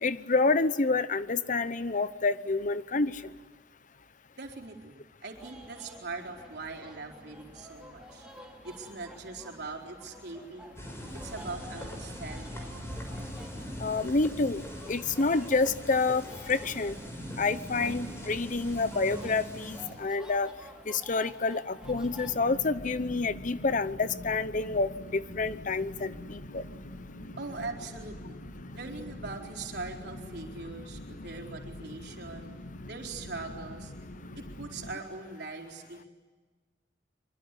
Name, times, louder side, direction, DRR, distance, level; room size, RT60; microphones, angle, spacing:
voice 1, 0.0-3.3 13.8-14.6 14.9-16.9 17.4-20.5 20.9-26.6, left 3 dB, 45° left, 14 dB, 0.8 m, -28 dB
voice 2, 4.4-8.3 8.6-10.8 11.1-12.7 27.4-28.4 28.7-32.5 32.9-33.9 34.3-36.1, right 3 dB, 65° right, 1 dB, 4.3 m, -41 dB
sound 1, 5.3-22.3, right 1 dB, 5° right, 3.9 m, -51 dB
sound 2, 10.8-19.9, equal, 15° left, 6.0 m, -41 dB
sound 3, 21.8-35.0, left 1 dB, 60° left, 1.9 m, -44 dB
24.5 x 24.0 x 9.9 m, 1.4 s
head